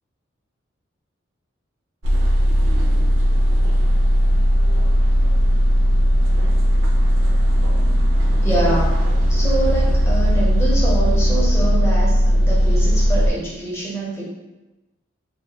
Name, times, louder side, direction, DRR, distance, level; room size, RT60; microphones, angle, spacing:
sound 1, 2.0-13.3, equal, 70° right, 0.4 m, -17 dB
voice 1, 8.3-8.9 9.3-14.2, right 2 dB, 15° left, -6 dB, 0.5 m, -25 dB
2.2 x 2.1 x 2.7 m, 1.1 s
head